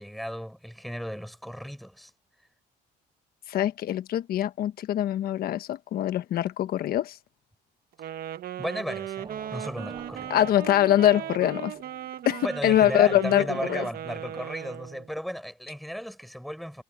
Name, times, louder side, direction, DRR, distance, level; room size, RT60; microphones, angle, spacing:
voice 1, 0.0-2.1 8.6-10.3 12.4-16.8, equal, ahead, 4.8 m, -35 dB
voice 2, 3.5-7.2 10.3-11.7 12.2-13.4 13.7-13.8, left 12 dB, 65° left, 1.3 m, -23 dB
Wind instrument woodwind instrument, 7.9-15.1, right 11 dB, 60° right, 1.3 m, -37 dB
sound 1, 9.2-12.1, right 4 dB, 25° right, 6.0 m, -46 dB
cardioid pair, 110°, 17 cm